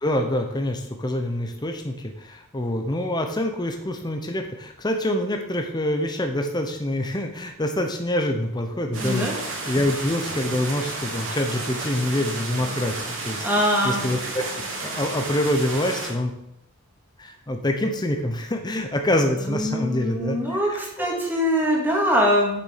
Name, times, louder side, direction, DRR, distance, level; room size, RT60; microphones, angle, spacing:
voice 1, 0.0-13.4 13.8-16.3 17.2-21.2, left 1 dB, 20° left, 4 dB, 0.9 m, -26 dB
sound 1, 8.9-16.1, right 2 dB, 65° right, 3.0 m, -32 dB
voice 2, 9.0-9.3 13.4-14.0 19.5-22.6, equal, 10° right, -2 dB, 2.2 m, -23 dB
7.1 x 6.8 x 6.6 m, 0.79 s
head